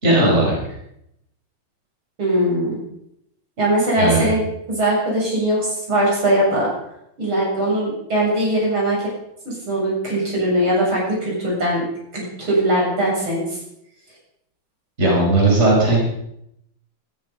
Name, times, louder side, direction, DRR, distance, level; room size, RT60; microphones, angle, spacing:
voice 1, 0.0-0.6 4.0-4.3 15.0-16.0, right 2 dB, 30° right, -2 dB, 5.2 m, -16 dB
voice 2, 2.2-2.8 3.6-6.7 7.2-9.1 9.4-11.8 12.1-13.6, right 1 dB, 80° right, -4 dB, 8.5 m, -20 dB
20.5 x 13.0 x 5.3 m, 0.78 s
omnidirectional pair, 2.2 m